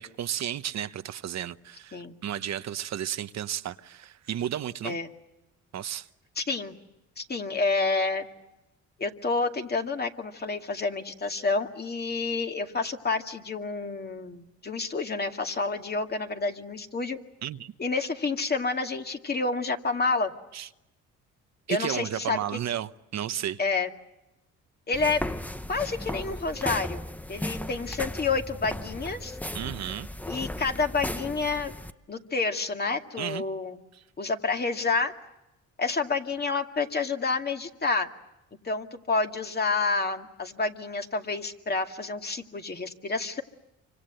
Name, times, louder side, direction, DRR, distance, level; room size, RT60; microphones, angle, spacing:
voice 1, 0.0-5.0 5.7-6.1 17.4-17.7 20.5-20.7 21.7-23.6 27.5-27.6 29.5-30.1 33.2-33.4 33.9-34.0, right 10 dB, 60° right, 1.0 m, -33 dB
voice 2, 6.4-6.8 7.2-8.3 9.0-17.2 17.8-20.3 21.7-22.4 23.6-23.9 24.9-25.2 25.7-27.0 27.3-29.4 30.3-31.7 32.1-33.8 34.2-35.1 35.8-38.1 38.6-43.4, left 4 dB, 30° left, 2.3 m, -29 dB
sound 1, 24.9-31.9, left 1 dB, 5° left, 0.9 m, -36 dB
28.0 x 25.5 x 7.8 m
cardioid pair, 90°, 30 cm